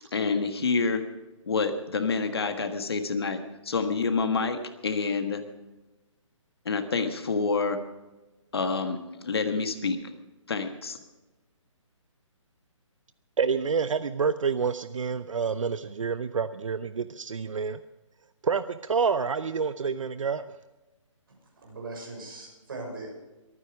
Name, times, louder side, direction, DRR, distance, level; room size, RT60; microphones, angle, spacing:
voice 1, 0.1-1.0 1.5-5.4 6.6-7.8 8.5-10.0 10.5-11.0, left 4 dB, 50° left, 7 dB, 1.5 m, -28 dB
voice 2, 13.4-17.8 18.4-20.5, right 5 dB, 75° right, 13 dB, 0.7 m, -28 dB
voice 3, 21.6-23.1, right 2 dB, 45° right, 0 dB, 6.5 m, -39 dB
23.0 x 9.7 x 4.9 m, 1.1 s
hypercardioid pair, 180°, 17 cm